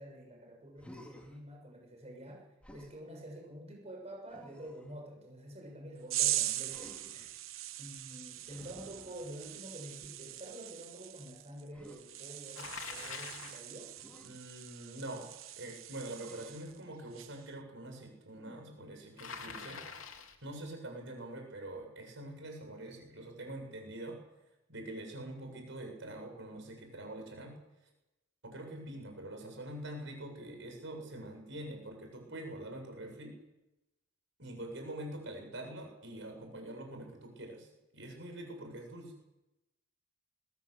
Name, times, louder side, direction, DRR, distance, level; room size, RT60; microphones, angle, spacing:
voice 1, 0.0-2.4 2.7-7.3 7.8-13.9, right 1 dB, 35° right, 0 dB, 6.7 m, -48 dB
Human voice, 0.8-1.4 2.6-3.0 4.3-5.0 6.7-7.3 8.4-9.7 11.7-12.0 14.0-14.3 16.2-16.8 18.3-18.9, left 1 dB, 5° left, 4.4 m, -54 dB
sound 1, 6.1-16.8 17.1-17.5, right 14 dB, 85° right, 0.9 m, -40 dB
Bicycle, 12.5-13.7 19.2-20.4, left 6 dB, 90° left, 3.0 m, -44 dB
voice 2, 14.2-15.3 15.6-19.8 20.4-24.2 24.7-27.5 28.4-33.4 34.4-37.7 37.9-39.1, right 1 dB, 65° right, 3 dB, 7.5 m, -45 dB
22.0 x 20.5 x 8.2 m, 0.96 s
head